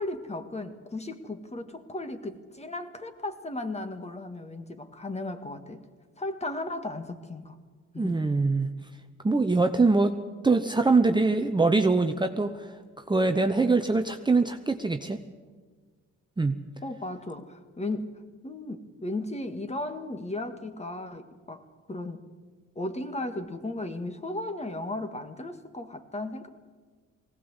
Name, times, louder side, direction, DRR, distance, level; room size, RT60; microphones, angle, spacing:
voice 1, 0.0-5.9 6.2-7.6 7.9-8.3 16.8-22.3 22.8-26.5, left 2 dB, 20° left, 8 dB, 1.8 m, -36 dB
voice 2, 8.0-8.7 9.2-10.2 10.4-12.7 13.1-15.2 16.4-16.6, right 3 dB, 15° right, 6 dB, 0.9 m, -23 dB
20.5 x 17.5 x 8.1 m, 1.5 s
cardioid pair, 90°, 30 cm